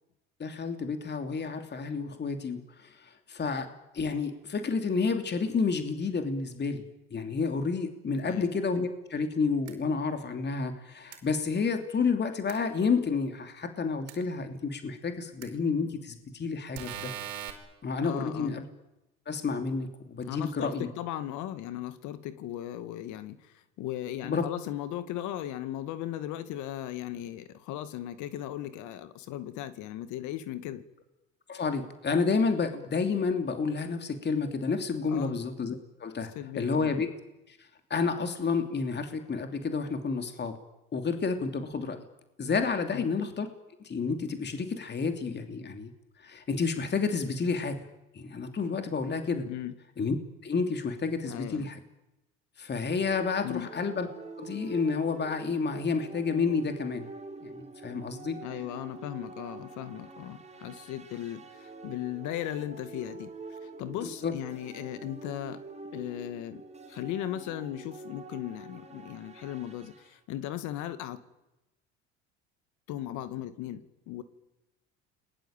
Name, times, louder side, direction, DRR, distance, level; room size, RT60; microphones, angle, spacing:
voice 1, 0.4-6.8 7.1-17.1 17.8-18.6 19.3-20.9 24.2-24.5 31.5-37.1 37.5-40.6 40.9-42.1 42.4-43.5 43.8-45.9 46.2-47.8 48.1-49.5 50.0-50.2 50.4-51.8 52.6-54.1 54.4-57.0 57.4-58.4 64.2-64.3, left 4 dB, 35° left, 7 dB, 2.9 m, -30 dB
voice 2, 8.2-8.5 18.0-18.5 20.2-30.8 35.1-35.4 36.4-36.9 42.9-43.1 49.5-49.7 51.3-51.7 53.4-53.7 58.4-65.6 65.9-66.6 66.9-71.2 72.9-74.2, left 12 dB, 70° left, 12 dB, 2.1 m, -37 dB
sound 1, 9.7-9.8 11.1-11.2 12.5-12.6 14.1-14.2 15.4-15.5 16.7-17.5, right 11 dB, 90° right, 4.7 m, -39 dB
sound 2, 52.9-70.1, right 3 dB, 20° right, 3.5 m, -46 dB
29.5 x 21.0 x 9.0 m, 0.97 s
supercardioid pair, 80°, 31 cm